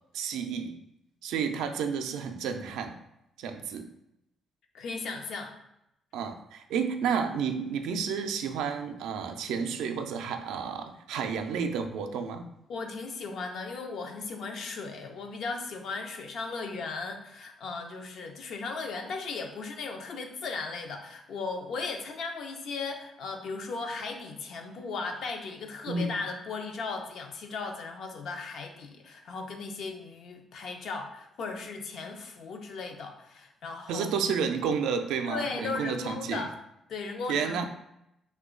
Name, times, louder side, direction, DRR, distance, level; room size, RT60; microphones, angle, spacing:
voice 1, 0.1-0.8 1.2-3.0 3.4-3.9 6.1-12.5 25.9-26.1 33.9-36.5 37.3-37.6, right 6 dB, 90° right, 6 dB, 0.3 m, -31 dB
voice 2, 4.7-5.6 12.7-34.1 35.3-36.5 36.9-37.6, left 4 dB, 70° left, 4 dB, 0.5 m, -37 dB
3.0 x 2.2 x 3.6 m, 0.82 s
cardioid pair, 90°, 0 cm